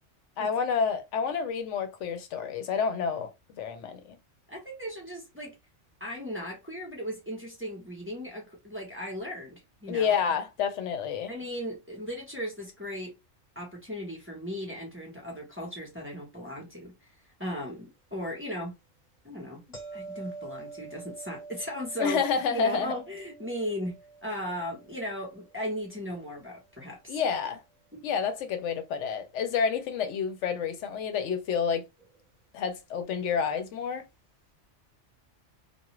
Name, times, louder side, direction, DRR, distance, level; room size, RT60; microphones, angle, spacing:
voice 1, 0.4-3.3 3.6-4.0 9.9-11.3 22.0-22.9 27.1-27.6 28.0-31.8 32.5-34.1, left 6 dB, 75° left, 0.9 m, -29 dB
voice 2, 4.5-5.6 6.0-10.2 11.3-13.1 13.6-16.9 17.4-18.8 19.2-19.6 19.9-22.2 22.5-27.2 27.9-28.0, equal, 10° right, 0.9 m, -37 dB
sound 1, 19.7-26.7 32.0-32.2, right 4 dB, 30° left, 1.2 m, -47 dB
2.3 x 2.3 x 2.9 m
omnidirectional pair, 1.2 m